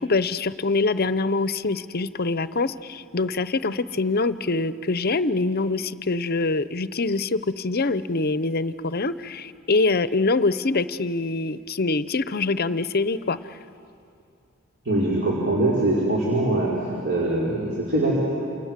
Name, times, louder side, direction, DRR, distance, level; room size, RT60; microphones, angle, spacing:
voice 1, 0.0-13.4, left 3 dB, 45° left, 14 dB, 0.7 m, -24 dB
voice 2, 14.8-16.7 17.0-18.2, right 2 dB, 50° right, -6 dB, 4.8 m, -22 dB
29.0 x 27.5 x 7.5 m, 2.5 s
head